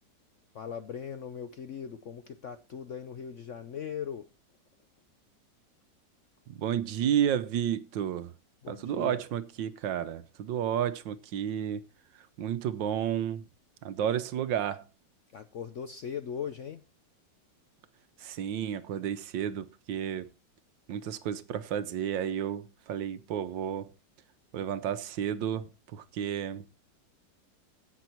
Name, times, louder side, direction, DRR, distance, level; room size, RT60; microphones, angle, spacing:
voice 1, 0.5-4.3 8.6-9.2 15.3-16.8, left 7 dB, 65° left, 0.7 m, -39 dB
voice 2, 6.5-8.3 8.7-11.9 12.1-13.5 13.8-14.9 18.2-20.3 20.9-23.9 24.5-26.7, right 9 dB, 75° right, 1.5 m, -32 dB
16.5 x 6.2 x 4.4 m
omnidirectional pair, 2.0 m